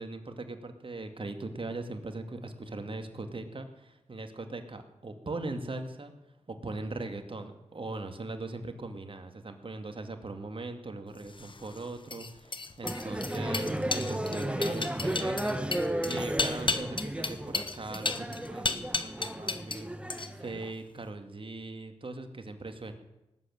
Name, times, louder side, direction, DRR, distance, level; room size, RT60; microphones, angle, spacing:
voice 1, 0.0-6.1 6.5-20.0 20.4-22.9, right 2 dB, 50° right, 7 dB, 2.3 m, -40 dB
sound 1, 11.3-19.8 20.1-20.6, left 3 dB, 45° left, 1.3 m, -34 dB
sound 2, 12.8-20.7, right 1 dB, 10° right, 1.5 m, -34 dB
19.0 x 8.2 x 9.1 m, 0.96 s
cardioid pair, 45°, 12 cm